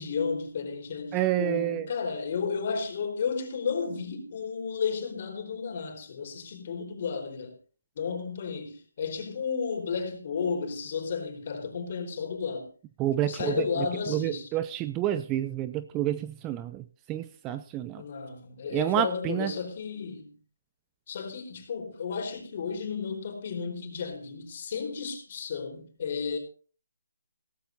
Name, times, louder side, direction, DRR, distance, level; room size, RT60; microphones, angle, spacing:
voice 1, 0.0-7.5 8.0-12.7 13.2-14.5 18.0-20.3 21.1-26.4, left 5 dB, 45° left, 4.4 m, -33 dB
voice 2, 1.1-1.9 13.0-18.0 18.7-19.5, right 12 dB, 15° right, 0.6 m, -29 dB
17.5 x 15.5 x 2.7 m
figure-of-eight pair, 155°, 0 cm